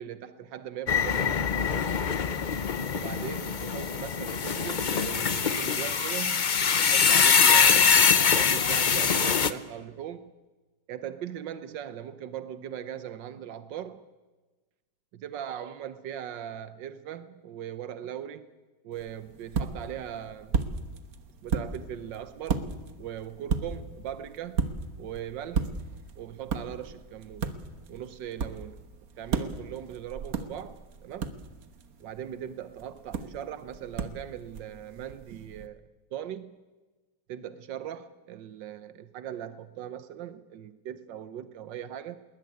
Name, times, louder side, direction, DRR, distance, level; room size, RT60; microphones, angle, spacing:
voice 1, 0.0-1.5 2.9-6.5 6.8-10.3 10.9-14.0 15.2-18.5 18.8-20.6 21.4-22.7 23.0-24.6 25.0-25.7 26.2-27.5 27.9-28.8 29.2-30.8 31.0-31.3 32.0-36.5 37.3-42.2, right 10 dB, 85° right, 13 dB, 1.6 m, -39 dB
sound 1, 0.9-9.5, left 6 dB, 45° left, 0.6 m, -23 dB
sound 2, 18.9-35.7, right 5 dB, 55° right, 1.7 m, -35 dB
20.0 x 20.0 x 9.4 m, 1.2 s
omnidirectional pair, 1.9 m